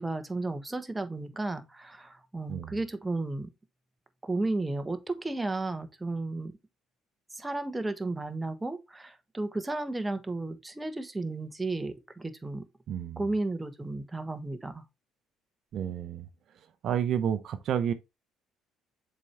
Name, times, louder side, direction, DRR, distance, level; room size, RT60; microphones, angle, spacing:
voice 1, 0.0-3.5 4.2-6.5 7.3-12.7 13.2-14.8, right 2 dB, 15° right, 1.2 m, -33 dB
voice 2, 12.9-13.2 15.7-16.3 16.8-17.9, right 9 dB, 60° right, 0.6 m, -30 dB
6.9 x 4.5 x 3.3 m
supercardioid pair, 85°, 0 cm